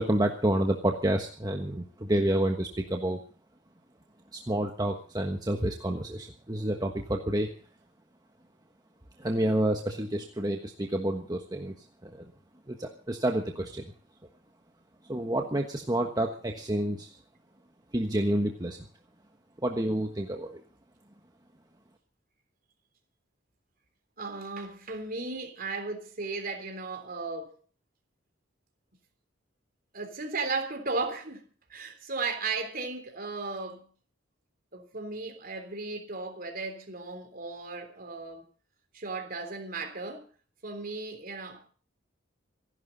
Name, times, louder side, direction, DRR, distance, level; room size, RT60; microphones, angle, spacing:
voice 1, 0.0-3.2 4.3-7.5 9.2-11.7 12.0-12.3 12.7-13.8 15.1-17.2 17.9-18.8 19.6-20.6, right 1 dB, 20° right, 1.3 m, -29 dB
voice 2, 24.2-27.6 29.9-33.9 34.7-38.4 38.9-40.3 40.6-41.7, right 3 dB, 50° right, 3.5 m, -35 dB
26.5 x 11.5 x 4.0 m
head